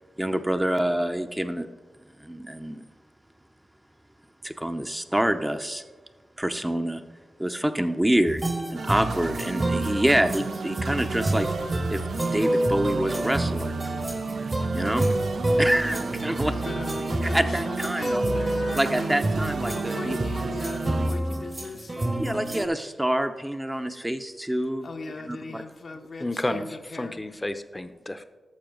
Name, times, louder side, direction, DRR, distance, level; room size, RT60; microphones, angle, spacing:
voice 1, 0.2-1.7 2.2-2.8 4.4-5.8 6.4-7.0 7.4-8.4 8.7-11.5 11.9-12.0 12.3-13.7 14.7-15.1 15.6-16.5 17.2-18.2 18.7-20.2 22.2-24.9 25.3-25.6, right 1 dB, 15° right, 7 dB, 0.7 m, -26 dB
sound 1, 8.3-22.7, right 1 dB, 35° right, 1.1 m, -28 dB
sound 2, 8.7-21.1, right 4 dB, 75° right, 0.5 m, -33 dB
voice 2, 16.4-19.1 19.6-22.7 24.8-27.2, left 3 dB, 70° left, 3 dB, 0.9 m, -39 dB
voice 3, 26.2-28.3, left 1 dB, 20° left, 10 dB, 0.7 m, -31 dB
11.5 x 6.8 x 3.9 m, 1.3 s
cardioid pair, 45°, 0 cm